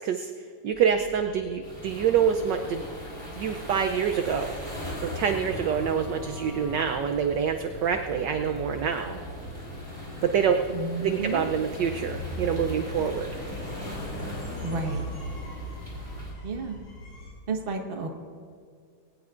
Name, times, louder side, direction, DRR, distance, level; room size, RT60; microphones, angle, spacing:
voice 1, 0.0-2.8 3.3-4.6 5.0-9.2 10.2-10.6 11.0-13.4, right 7 dB, 70° right, 5 dB, 1.1 m, -26 dB
sound 1, 0.7-17.3, equal, 75° left, 4.9 m, -40 dB
sound 2, 1.6-16.3, left 1 dB, 15° left, 3.7 m, -41 dB
sound 3, 4.4-7.0, left 1 dB, 30° left, 3.7 m, -45 dB
voice 2, 10.7-11.4 14.6-15.0 16.4-16.8 17.5-18.1, right 4 dB, 35° right, 3 dB, 1.1 m, -31 dB
20.5 x 18.0 x 2.5 m, 2.2 s
omnidirectional pair, 2.3 m